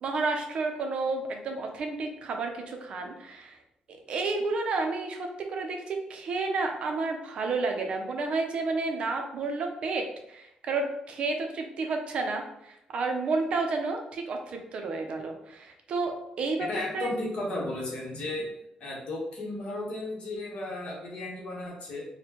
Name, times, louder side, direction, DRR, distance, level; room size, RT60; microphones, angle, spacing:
voice 1, 0.0-3.6 4.1-16.7 16.9-17.1, right 3 dB, 45° right, 3 dB, 0.5 m, -31 dB
voice 2, 16.7-18.5 18.8-22.0, left 2 dB, 50° left, -3 dB, 1.1 m, -34 dB
4.2 x 2.1 x 2.9 m, 0.80 s
cardioid pair, 170°, 3 cm